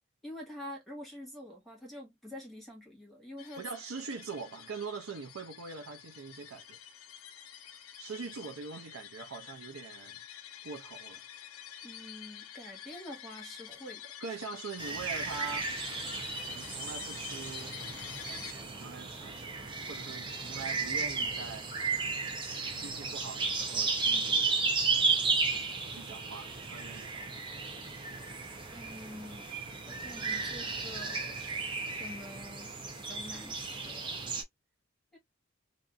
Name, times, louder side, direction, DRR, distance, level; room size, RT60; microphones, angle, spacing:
voice 1, 0.2-3.6 11.8-14.1 28.7-29.5 29.8-31.4 31.9-34.3 35.1-35.2, left 1 dB, ahead, 1.4 m, -47 dB
sound 1, 3.4-18.5, left 10 dB, 80° left, 0.5 m, -47 dB
voice 2, 3.6-6.8 8.0-10.2 10.6-11.2 14.2-15.7 16.5-17.8 18.2-19.6 19.9-21.7 22.7-24.6 25.9-27.4, right 5 dB, 75° right, 0.6 m, -43 dB
sound 2, 14.8-34.4, right 4 dB, 25° right, 0.6 m, -34 dB
2.7 x 2.6 x 2.3 m
head